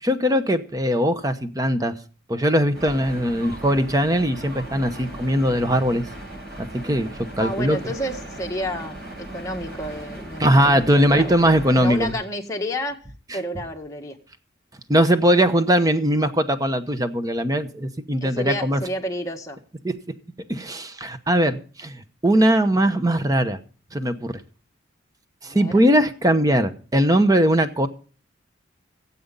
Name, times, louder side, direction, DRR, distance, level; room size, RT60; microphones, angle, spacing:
voice 1, 0.0-1.9 2.3-6.0 6.6-7.8 10.4-12.2 14.9-18.8 19.8-19.9 20.5-23.6 23.9-24.3 25.4-27.9, equal, 20° right, 10 dB, 0.9 m, -20 dB
sound 1, 2.7-12.1, right 1 dB, 55° right, 6.8 m, -38 dB
voice 2, 7.4-9.0 9.3-13.0 13.3-14.2 18.2-19.6 25.4-25.8, equal, 15° left, 1 dB, 1.7 m, -30 dB
17.0 x 8.6 x 5.4 m, 0.41 s
head